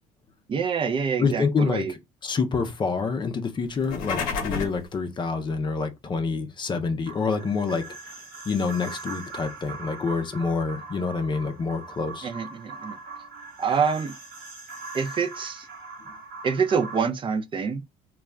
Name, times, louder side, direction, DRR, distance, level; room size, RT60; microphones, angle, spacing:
voice 1, 0.5-2.0 12.2-13.0 13.6-14.1 14.9-15.7 16.4-17.8, right 6 dB, 35° right, 0.5 m, -26 dB
voice 2, 1.2-1.8 2.2-7.8 8.5-12.3, left 4 dB, 35° left, 0.6 m, -27 dB
sound 1, 3.7-4.9, left 5 dB, 75° left, 0.8 m, -30 dB
sound 2, 7.1-17.0, right 4 dB, 75° right, 0.9 m, -41 dB
2.3 x 2.1 x 3.5 m
supercardioid pair, 85°, 14 cm